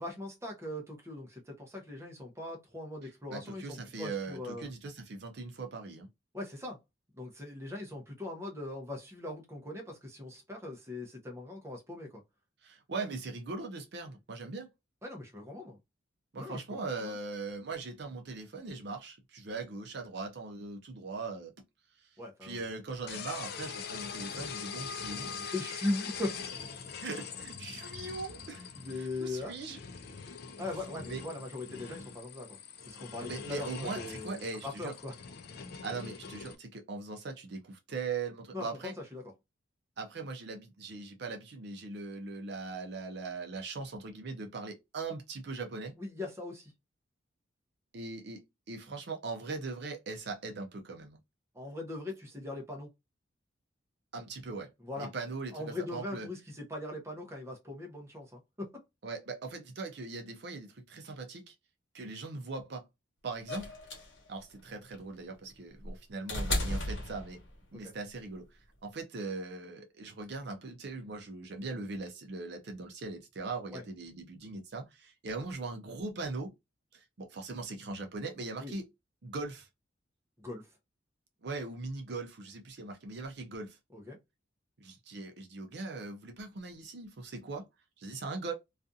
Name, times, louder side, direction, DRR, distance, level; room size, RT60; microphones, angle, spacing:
voice 1, 0.0-4.7 6.3-6.8 7.1-12.2 15.0-15.8 16.3-16.6 17.0-17.1 22.2-22.6 25.3-26.3 28.8-29.5 30.6-35.1 38.5-39.2 46.0-46.7 51.5-52.9 54.8-55.1 55.5-58.8 67.7-67.9 73.7-73.8 78.6-78.7 80.4-80.7 83.9-84.2, left 2 dB, 15° right, 0.7 m, -40 dB
voice 2, 3.3-6.1 12.6-14.7 16.3-21.5 22.0-25.5 27.0-28.7 29.0-29.8 31.0-31.2 33.2-34.9 35.8-38.9 40.0-45.9 47.9-51.2 54.1-54.7 55.0-56.3 59.0-61.5 61.9-62.9 63.2-63.7 64.3-67.4 67.7-76.5 76.9-78.9 79.2-79.7 81.4-83.8 84.8-87.7 88.0-88.5, right 3 dB, 55° right, 0.5 m, -40 dB
sound 1, 23.1-36.5, left 6 dB, 55° left, 0.4 m, -43 dB
sound 2, 63.5-67.8 69.0-69.1, left 1 dB, 75° left, 1.1 m, -35 dB
2.4 x 2.4 x 2.6 m
head